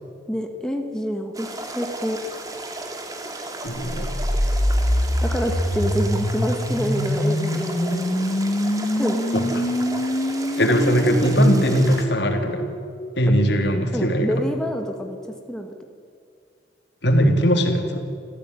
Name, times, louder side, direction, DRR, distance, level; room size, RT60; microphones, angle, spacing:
voice 1, 0.3-2.2 5.2-8.3 9.0-9.2 13.9-15.2 15.5-15.8, equal, 5° left, 3 dB, 1.7 m, -27 dB
sound 1, 1.3-12.0, right 2 dB, 20° right, 2.5 m, -35 dB
voice 2, 3.6-4.1 9.3-9.7 10.6-12.7 13.2-14.3 17.0-18.0, equal, 65° left, 4 dB, 3.2 m, -20 dB
sound 2, 3.8-13.7, equal, 40° left, 1.7 m, -25 dB
28.0 x 15.0 x 9.8 m, 2.3 s
head